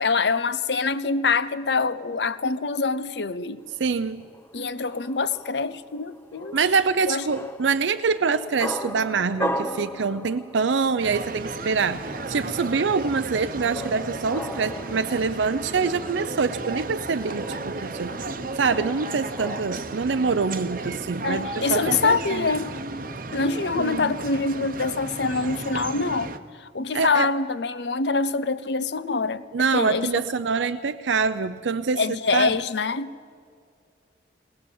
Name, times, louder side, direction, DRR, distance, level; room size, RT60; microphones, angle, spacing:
voice 1, 0.0-3.6 4.5-6.6 7.1-7.2 21.2-22.7 23.3-29.4 29.7-30.2 32.0-33.1, left 4 dB, 70° left, 0.8 m, -25 dB
sound 1, 3.7-20.0, left 1 dB, 10° left, 0.8 m, -38 dB
voice 2, 3.8-4.3 6.5-18.2 18.5-22.5 23.8-24.1 26.9-27.3 29.5-32.5, right 5 dB, 85° right, 0.6 m, -25 dB
sound 2, 11.0-26.4, right 2 dB, 50° right, 0.9 m, -34 dB
21.0 x 20.0 x 7.2 m
head